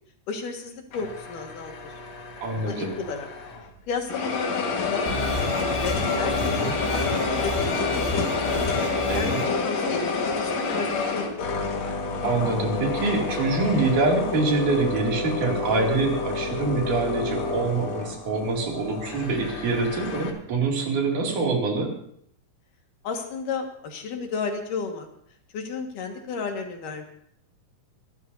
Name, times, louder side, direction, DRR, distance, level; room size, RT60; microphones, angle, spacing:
voice 1, 0.3-1.9 2.6-3.3 3.9-5.5 5.8-8.6 9.1-11.4 23.0-25.1 25.5-27.0, left 5 dB, 80° left, 3 dB, 3.3 m, -33 dB
sound 1, 0.9-3.7 4.1-20.3, left 4 dB, 55° left, 2.7 m, -29 dB
voice 2, 2.4-2.9 6.4-6.7 9.1-9.4 12.2-21.9, right 3 dB, 70° right, 0 dB, 4.1 m, -25 dB
sound 2, 5.1-9.4, equal, 15° right, 5.7 m, -31 dB
26.5 x 13.0 x 2.7 m, 0.68 s
omnidirectional pair, 3.7 m